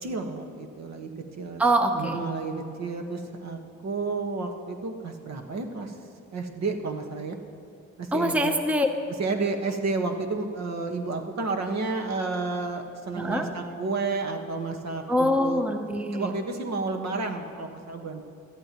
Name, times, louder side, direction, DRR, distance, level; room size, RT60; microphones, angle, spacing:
voice 1, 0.0-1.1 1.4-1.6 1.9-5.9 6.3-7.4 8.0-8.5 9.2-15.6 16.1-18.2, right 3 dB, 60° right, 4 dB, 1.5 m, -31 dB
voice 2, 1.6-2.2 8.1-8.9 13.1-13.5 15.1-16.3, equal, 5° right, 6 dB, 0.8 m, -24 dB
19.0 x 13.5 x 3.0 m, 2.6 s
cardioid pair, 90°, 30 cm